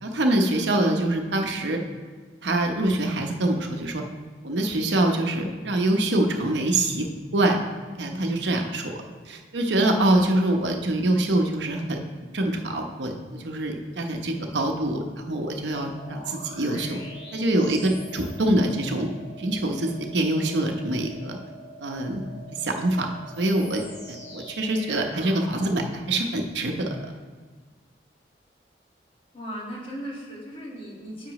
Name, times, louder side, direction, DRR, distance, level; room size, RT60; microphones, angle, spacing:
voice 1, 0.0-1.8 2.4-4.0 4.4-7.1 7.3-7.6 8.0-9.0 9.3-12.0 12.3-17.0 17.3-19.1 19.4-21.4 21.8-22.2 22.6-23.1 23.4-27.0, right 1 dB, 80° right, 3 dB, 0.9 m, -25 dB
sound 1, 15.9-25.8, equal, 65° left, 2.0 m, -44 dB
voice 2, 29.3-31.3, equal, 30° left, -4 dB, 1.9 m, -37 dB
9.6 x 6.9 x 3.1 m, 1.5 s
head